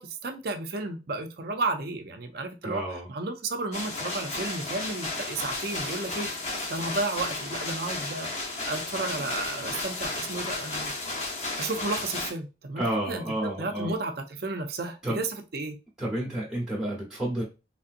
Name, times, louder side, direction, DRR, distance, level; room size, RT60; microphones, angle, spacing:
voice 1, 0.0-6.3 6.7-10.9 11.6-15.8, right 3 dB, 55° right, 5 dB, 0.5 m, -33 dB
voice 2, 2.6-3.1 12.8-13.9 15.0-15.2 16.0-17.4, right 1 dB, 5° right, -4 dB, 0.9 m, -30 dB
sound 1, 3.7-12.3, left 2 dB, 40° left, 0.8 m, -33 dB
3.3 x 2.7 x 2.5 m, 0.28 s
head